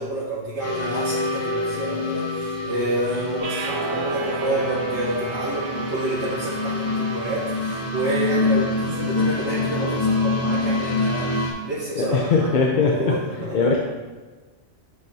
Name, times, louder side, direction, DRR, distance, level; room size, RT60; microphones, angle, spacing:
voice 1, 0.0-13.7, right 2 dB, 85° right, -7 dB, 1.4 m, -29 dB
sound 1, 0.6-11.5, left 3 dB, 15° left, 0.6 m, -26 dB
sound 2, 3.4-9.7, right 4 dB, 55° right, 0.7 m, -33 dB
voice 2, 12.0-13.1 13.5-13.8, left 4 dB, 50° left, -2 dB, 0.7 m, -20 dB
8.2 x 4.5 x 2.7 m, 1.3 s
omnidirectional pair, 1.2 m